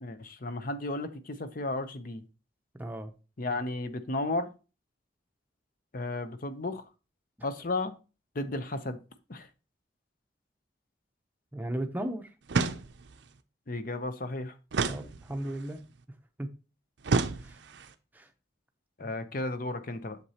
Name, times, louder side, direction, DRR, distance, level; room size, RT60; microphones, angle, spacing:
voice 1, 0.0-2.2 3.4-4.5 5.9-6.8 7.4-8.0 8.3-9.0 9.3-9.5 13.7-14.5 19.0-20.2, left 2 dB, 45° left, 10 dB, 0.7 m, -34 dB
voice 2, 2.8-3.1 11.5-12.3 14.9-15.8 16.4-16.5 17.4-17.6 18.1-18.3 19.0-19.1, right 1 dB, 10° right, 6 dB, 0.7 m, -35 dB
sound 1, 12.5-13.2 14.7-15.7 17.0-17.9, right 4 dB, 65° right, 0.5 m, -30 dB
8.0 x 6.6 x 2.9 m, 0.32 s
head